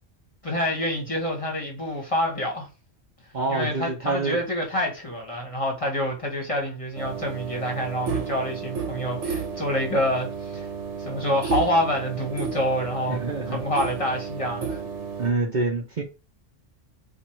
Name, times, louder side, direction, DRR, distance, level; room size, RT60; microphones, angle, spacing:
voice 1, 0.4-2.7 3.5-10.7 11.0-13.2 13.5-14.8, equal, 25° left, 1.2 m, -27 dB
voice 2, 3.3-4.4 13.1-13.6 15.2-16.0, right 3 dB, 45° right, 0.7 m, -26 dB
sound 1, 7.0-15.3, right 5 dB, 70° right, 1.1 m, -32 dB
4.4 x 2.5 x 4.5 m
omnidirectional pair, 1.3 m